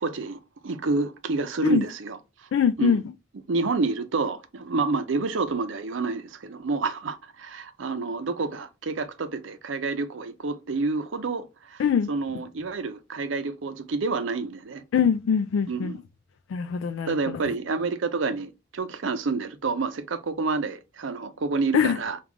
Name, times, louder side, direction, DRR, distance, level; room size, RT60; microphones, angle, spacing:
voice 1, 0.0-2.2 2.8-3.0 3.5-11.8 12.1-14.8 15.7-16.0 17.1-22.2, right 3 dB, 75° right, 0.6 m, -28 dB
voice 2, 2.5-3.0 11.8-12.1 14.9-15.9 16.5-17.5 21.7-22.0, left 7 dB, 85° left, 0.3 m, -23 dB
4.7 x 2.3 x 3.5 m
head